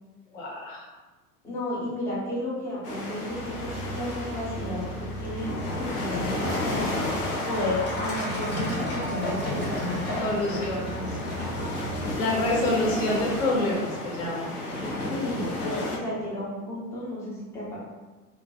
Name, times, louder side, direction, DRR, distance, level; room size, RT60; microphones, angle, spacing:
voice 1, 0.3-0.9 10.2-11.2 11.9-14.6, left 2 dB, 55° left, -2 dB, 0.9 m, -27 dB
voice 2, 1.4-5.5 5.8-6.9 7.4-10.2 10.6-11.1 15.1-17.8, left 1 dB, 5° left, -7 dB, 0.3 m, -33 dB
sound 1, 2.8-16.0, left 2 dB, 85° left, 0.6 m, -33 dB
Truck, 3.3-13.6, equal, 25° left, 0.7 m, -34 dB
sound 2, 9.0-11.8, right 2 dB, 55° right, 0.5 m, -48 dB
2.2 x 2.1 x 2.8 m, 1.2 s
figure-of-eight pair, 80°, 45 cm